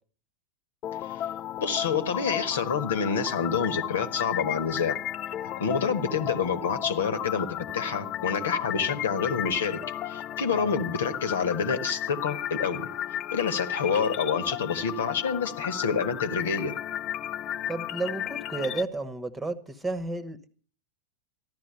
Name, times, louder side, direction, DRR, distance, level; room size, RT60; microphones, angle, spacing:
sound 1, 0.8-18.8, left 11 dB, 35° left, 0.6 m, -34 dB
voice 1, 1.6-5.0 5.6-7.5 7.7-9.8 10.0-12.9 13.3-16.7, left 6 dB, 65° left, 1.4 m, -28 dB
voice 2, 17.7-20.5, right 3 dB, 10° right, 1.3 m, -32 dB
14.5 x 11.5 x 6.6 m
figure-of-eight pair, 90°, 0 cm